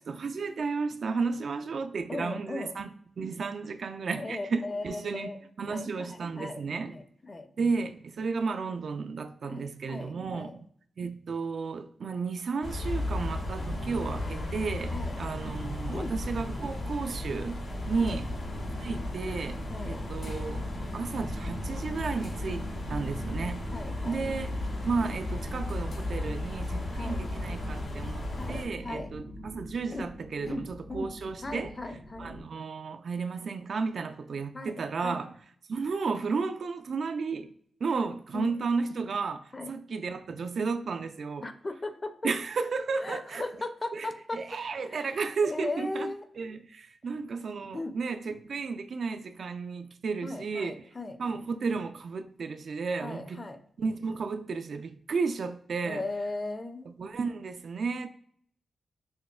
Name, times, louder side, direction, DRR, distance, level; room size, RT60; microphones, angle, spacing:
voice 1, 0.0-2.9 3.2-5.3 5.6-6.9 7.6-10.6 11.0-17.6 17.9-18.3 18.8-20.7 20.9-23.7 24.1-31.7 32.2-35.3 35.7-37.5 37.8-41.5 42.2-43.5 43.9-46.1 46.4-50.8 51.2-53.4 53.8-56.0 57.0-58.1, right 4 dB, 65° right, 0.3 m, -33 dB
voice 2, 2.1-2.7 4.2-5.4 5.7-7.5 9.4-10.6 14.9-15.2 15.9-16.1 18.0-18.2 19.7-20.0 23.7-24.2 26.9-27.2 28.4-29.1 29.9-30.1 30.4-32.3 34.5-35.3 38.3-38.6 39.5-39.7 40.4-40.5 41.4-42.1 43.0-44.4 44.9-46.2 47.7-48.0 50.2-51.2 53.0-53.6 55.8-56.9, left 2 dB, 35° left, 0.5 m, -38 dB
sound 1, 12.6-28.7, left 1 dB, 65° left, 1.3 m, -35 dB
sound 2, 17.9-32.4, equal, 90° left, 1.0 m, -43 dB
6.2 x 2.1 x 2.3 m
cardioid pair, 80°, 0 cm